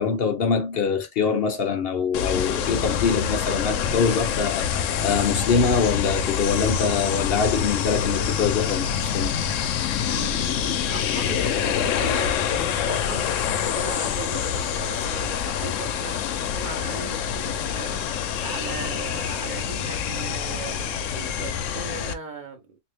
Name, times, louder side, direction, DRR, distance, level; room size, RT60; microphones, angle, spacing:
voice 1, 0.0-9.3, left 5 dB, 60° left, 0.8 m, -24 dB
sound 1, 2.1-22.1, left 8 dB, 90° left, 0.9 m, -26 dB
voice 2, 10.1-22.8, right 4 dB, 50° right, 0.7 m, -38 dB
3.6 x 2.6 x 3.3 m
omnidirectional pair, 1.3 m